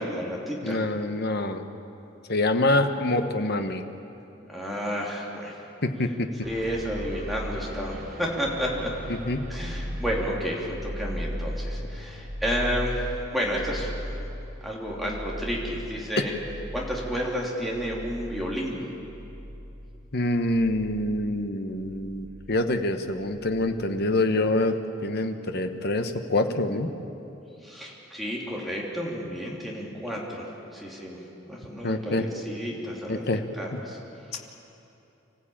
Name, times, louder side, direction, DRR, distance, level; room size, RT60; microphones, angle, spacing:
voice 1, 0.0-0.8 4.5-5.6 6.4-8.9 9.5-13.9 14.6-16.3 16.7-18.9 27.6-31.2 31.5-33.3 33.6-34.0 34.3-34.4, equal, ahead, -4 dB, 3.3 m, -31 dB
voice 2, 0.6-1.6 2.3-3.8 5.8-6.3 9.1-9.5 20.1-26.9 31.8-32.3 33.1-33.4 33.7-33.8 34.3-34.4, left 2 dB, 55° left, 7 dB, 1.2 m, -26 dB
sound 1, 6.4-22.6 23.0-23.9, equal, 45° right, 2.8 m, -37 dB
25.5 x 15.5 x 8.9 m, 2.8 s
head